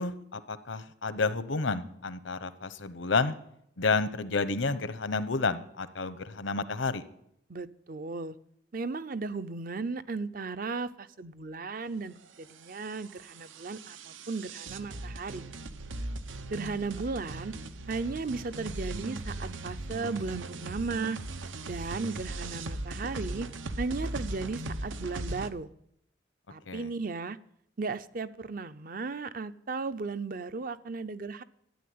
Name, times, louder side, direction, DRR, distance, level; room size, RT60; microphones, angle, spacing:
voice 1, 0.0-3.3 3.8-7.0 26.7-26.9, left 4 dB, 80° left, 13 dB, 0.9 m, -30 dB
voice 2, 7.5-8.4 8.7-15.5 16.5-17.5 17.9-21.2 21.7-23.5 23.8-25.7 26.5-27.4 27.8-31.4, right 4 dB, 50° right, 13 dB, 0.6 m, -35 dB
sound 1, 12.3-25.5, right 2 dB, 85° right, 0.9 m, -39 dB
13.0 x 9.4 x 9.5 m, 0.73 s
head